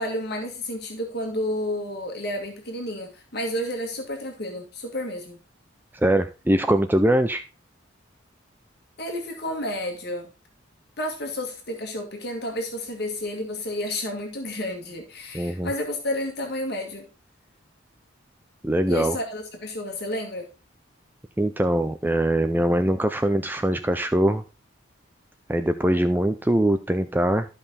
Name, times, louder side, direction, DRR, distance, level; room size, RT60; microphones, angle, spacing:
voice 1, 0.0-5.4 9.0-10.3 11.0-17.1 18.9-20.5, left 1 dB, 55° left, 2 dB, 2.0 m, -31 dB
voice 2, 5.9-7.4 15.3-15.7 18.6-19.2 21.4-24.4 25.5-27.5, right 1 dB, 10° right, 9 dB, 0.5 m, -22 dB
13.0 x 5.5 x 4.2 m, 0.30 s
head